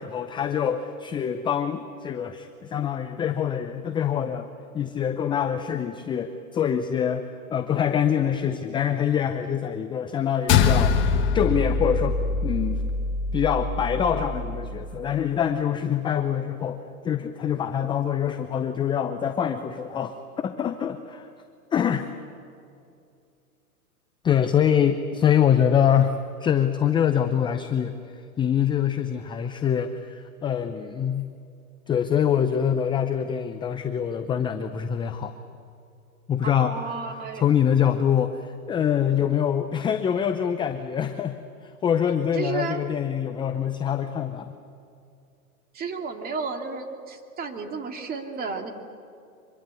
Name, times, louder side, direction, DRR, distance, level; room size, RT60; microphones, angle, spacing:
voice 1, 0.0-4.5 4.7-12.8 13.3-16.8 17.0-21.3 21.7-22.1 24.2-28.0 28.4-31.3 31.9-35.3 36.3-36.8 37.3-41.4 41.6-44.5, left 8 dB, 10° left, 8 dB, 0.6 m, -25 dB
sound 1, 10.5-15.1, left 5 dB, 25° left, 1.5 m, -24 dB
voice 2, 36.4-37.4 42.3-42.8 45.7-48.7, right 5 dB, 20° right, 4 dB, 2.5 m, -32 dB
25.0 x 22.5 x 8.3 m, 2.5 s
hypercardioid pair, 130°, 44 cm